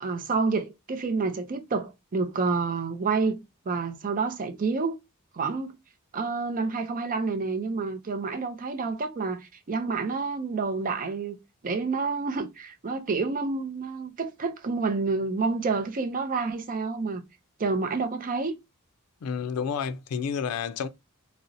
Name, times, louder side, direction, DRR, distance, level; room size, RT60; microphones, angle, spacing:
voice 1, 0.0-5.0 5.3-5.7 6.1-11.4 11.6-17.2 17.6-18.5, right 4 dB, 40° right, 0.5 m, -29 dB
voice 2, 19.2-20.9, left 6 dB, 75° left, 0.4 m, -30 dB
3.8 x 2.0 x 2.6 m
head